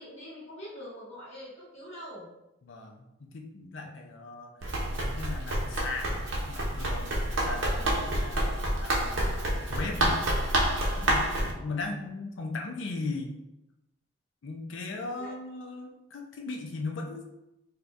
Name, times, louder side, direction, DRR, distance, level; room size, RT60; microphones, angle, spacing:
voice 1, 0.0-2.3 9.6-10.1 11.0-11.4 15.2-15.3, equal, 35° left, -7 dB, 1.4 m, -44 dB
voice 2, 2.6-4.5 5.0-9.3 9.7-10.2 11.0-13.3 14.4-17.2, left 3 dB, 75° left, 2 dB, 0.5 m, -38 dB
Run, 4.6-11.5, right 1 dB, 75° right, 0.7 m, -28 dB
4.1 x 2.3 x 2.4 m, 0.90 s
head